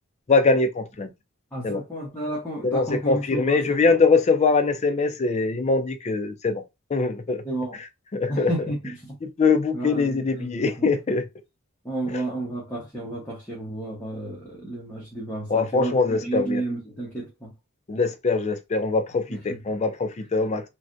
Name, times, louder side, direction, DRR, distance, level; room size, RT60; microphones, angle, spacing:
voice 1, 0.3-1.1 1.6-1.8 2.6-6.6 6.9-7.4 8.1-8.5 9.4-11.2 12.1-12.2 15.5-16.6 17.9-20.6, left 4 dB, 30° left, 0.4 m, -22 dB
voice 2, 1.5-3.8 7.4-7.8 8.3-9.1 9.7-10.9 11.8-17.5 19.3-19.6, right 1 dB, 10° left, 1.0 m, -32 dB
3.2 x 2.4 x 2.5 m
head